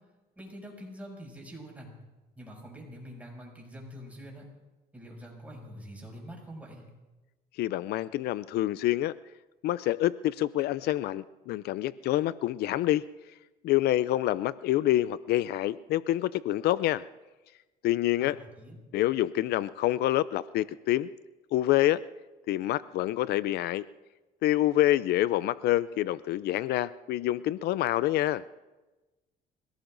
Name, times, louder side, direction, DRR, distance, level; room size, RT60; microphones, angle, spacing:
voice 1, 0.4-2.0 2.4-4.5 4.9-6.9 18.2-18.8, equal, 10° right, -1 dB, 6.3 m, -45 dB
voice 2, 7.6-9.1 9.6-13.0 13.6-17.0 17.8-18.4 18.9-21.1 21.5-22.0 22.5-23.9 24.4-28.4, left 14 dB, 75° left, 17 dB, 0.4 m, -27 dB
29.0 x 18.0 x 2.6 m, 1.1 s
cardioid pair, 110°, 17 cm